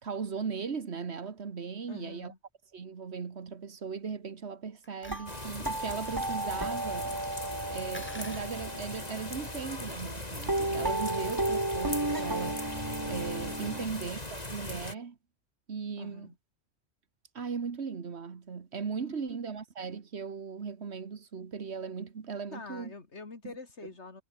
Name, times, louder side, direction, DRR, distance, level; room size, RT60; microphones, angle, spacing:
voice 1, 0.0-2.3 2.7-7.3 7.6-15.2 15.7-16.3 17.3-22.9, right 5 dB, 70° right, 1.7 m, -38 dB
voice 2, 1.9-2.4 13.8-14.0 16.0-16.4 19.0-19.4 22.5-24.2, left 3 dB, 85° left, 2.8 m, -46 dB
sound 1, 4.8-5.3 7.9-8.5, left 1 dB, 10° left, 1.4 m, -46 dB
sound 2, 5.0-10.0 10.5-13.8, right 2 dB, 20° right, 1.8 m, -34 dB
sound 3, 5.3-14.9, left 1 dB, 35° left, 4.1 m, -40 dB
omnidirectional pair, 1.1 m